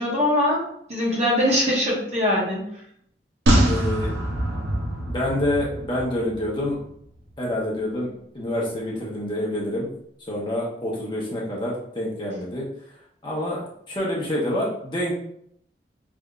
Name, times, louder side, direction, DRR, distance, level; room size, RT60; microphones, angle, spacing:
voice 1, 0.0-2.6, left 1 dB, 35° right, -6 dB, 1.3 m, -22 dB
sound 1, 3.5-6.9 7.2-7.3, right 1 dB, 75° right, 0.8 m, -24 dB
voice 2, 3.7-4.1 5.1-6.8 7.4-8.1 8.3-9.9 10.3-12.7 13.2-15.1, left 1 dB, 25° left, -4 dB, 1.0 m, -27 dB
3.4 x 3.4 x 2.5 m, 0.70 s
head